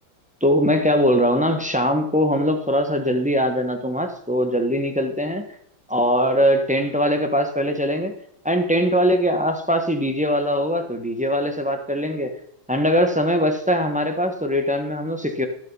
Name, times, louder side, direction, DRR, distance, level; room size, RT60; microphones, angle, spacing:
voice 1, 0.4-5.4 5.9-8.1 8.4-12.4 12.7-15.5, equal, 5° right, 5 dB, 0.8 m, -21 dB
17.0 x 6.5 x 5.5 m, 0.70 s
omnidirectional pair, 2.2 m